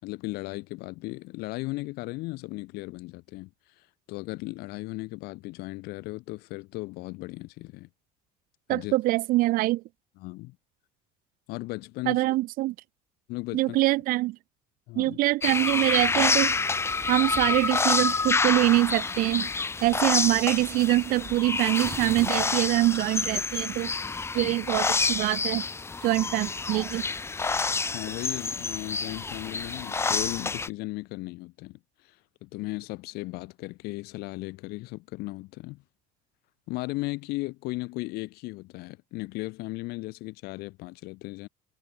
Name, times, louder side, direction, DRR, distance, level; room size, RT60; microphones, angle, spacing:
voice 1, 0.0-7.9 8.7-8.9 10.2-10.6 11.5-12.2 13.3-13.8 14.9-15.2 24.4-24.6 27.9-35.8 36.7-41.5, left 22 dB, 70° left, 4.1 m, -36 dB
voice 2, 8.7-9.8 12.1-12.7 13.5-14.4 15.0-16.6 17.1-19.5 19.8-23.9 24.3-25.7 26.0-27.1, right 18 dB, 60° right, 1.0 m, -24 dB
sound 1, 15.4-30.7, left 4 dB, 15° left, 4.2 m, -28 dB
cardioid pair, 160°, 17 cm